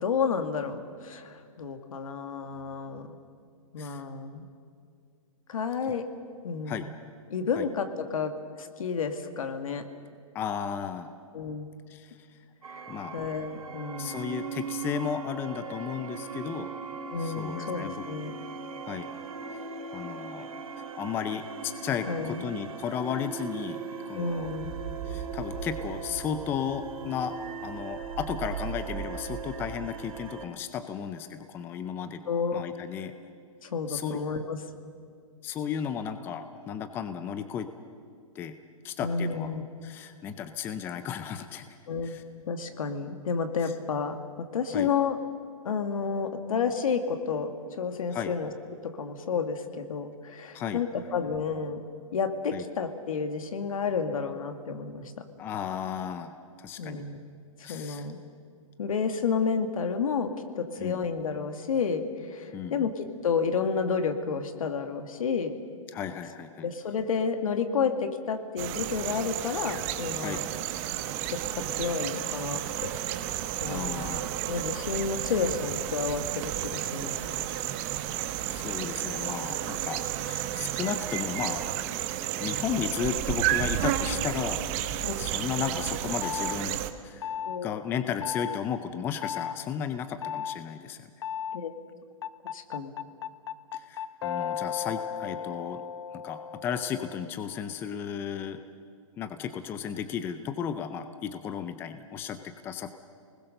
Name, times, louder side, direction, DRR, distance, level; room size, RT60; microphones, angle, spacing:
voice 1, 0.0-3.2 3.7-4.5 5.5-6.1 6.4-6.9 7.3-8.3 8.6-9.9 11.3-11.7 12.7-12.8 13.1-14.3 17.1-18.3 22.1-22.4 24.1-24.7 32.3-32.6 33.6-34.6 39.0-39.6 41.9-42.2 42.4-45.2 45.6-48.5 48.8-51.8 52.1-55.2 56.8-57.2 57.7-58.2 58.8-65.6 66.6-70.5 71.3-72.9 73.6-74.1 74.5-77.4 85.0-85.2 87.5-87.8 91.5-91.7 92.5-92.9, left 5 dB, 75° left, 7 dB, 2.0 m, -31 dB
voice 2, 10.3-11.1 11.9-12.2 12.9-13.1 14.0-16.7 17.2-18.0 18.8-19.1 19.9-20.5 21.0-23.8 24.1-24.5 25.1-27.4 27.6-32.2 32.5-33.1 33.9-34.2 35.4-37.7 38.3-38.6 38.8-39.5 39.8-41.6 42.0-42.2 43.6-43.7 44.7-44.9 48.1-48.3 50.5-50.8 52.5-52.6 55.4-57.0 57.6-58.1 60.8-61.0 62.5-62.9 65.9-66.7 70.2-70.4 73.7-74.3 74.9-75.0 78.1-81.7 82.4-84.6 85.2-91.1 93.7-95.8 96.1-98.6 99.2-102.9, left 8 dB, 10° left, 9 dB, 0.6 m, -34 dB
sound 1, 12.6-30.5, right 5 dB, 85° right, 2.9 m, -38 dB
sound 2, 68.6-86.9, right 12 dB, 25° right, 0.9 m, -32 dB
sound 3, 86.2-86.6 87.2-87.6 88.2-88.6 89.2-89.5 90.2-90.6 91.2-91.6 92.2-97.3, left 8 dB, 50° left, 0.7 m, -35 dB
27.5 x 20.5 x 6.6 m, 2.2 s
hypercardioid pair, 160°, 18 cm